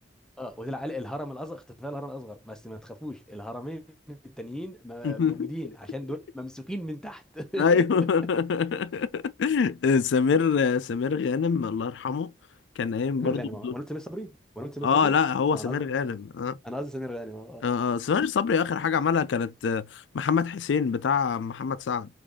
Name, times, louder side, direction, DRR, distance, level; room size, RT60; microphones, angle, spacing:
voice 1, 0.4-7.8 13.2-15.2 15.5-16.1 16.6-17.6, equal, 5° left, 0.6 m, -37 dB
voice 2, 5.0-5.5 7.6-12.3 12.8-13.7 14.8-16.6 17.6-22.1, left 6 dB, 85° left, 0.4 m, -25 dB
5.1 x 2.5 x 3.5 m
head